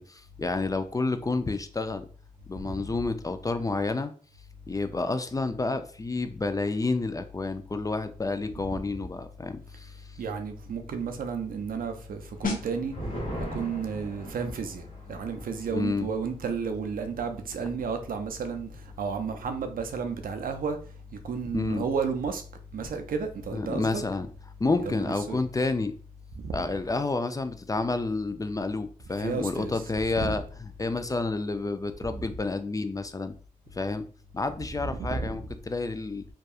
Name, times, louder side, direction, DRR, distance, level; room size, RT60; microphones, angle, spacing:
voice 1, 0.0-2.1 2.5-4.1 4.7-9.9 15.7-16.1 21.5-21.9 23.5-24.3 24.6-25.9 26.5-33.3 33.7-34.0 34.3-36.3, left 3 dB, 25° left, 0.3 m, -29 dB
voice 2, 10.2-12.9 13.5-14.8 15.1-18.7 19.0-20.8 21.1-22.4 22.7-24.0 24.8-25.4 26.4-26.7 29.2-29.7 30.2-30.4 32.1-32.2 34.8-35.4, right 5 dB, 85° right, 0.4 m, -32 dB
sound 1, 12.4-22.9 23.2-23.5, left 4 dB, 75° left, 0.5 m, -43 dB
sound 2, 12.4-19.3 19.6-19.7 20.1-20.5, equal, 45° left, 1.4 m, -41 dB
2.7 x 2.2 x 2.3 m
cardioid pair, 40°, 14 cm